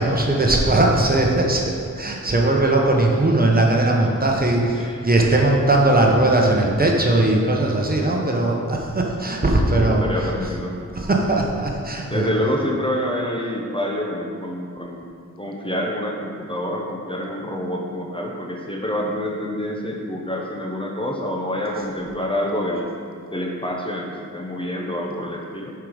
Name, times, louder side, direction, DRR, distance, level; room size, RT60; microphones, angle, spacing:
voice 1, 0.0-10.5 10.9-12.3, right 2 dB, 30° right, 0 dB, 0.9 m, -19 dB
voice 2, 4.7-5.3 9.7-10.8 12.1-22.9 23.3-25.7, left 1 dB, 15° left, -1 dB, 0.7 m, -27 dB
7.5 x 4.8 x 4.9 m, 2.3 s
wide cardioid pair, 105°, 31 cm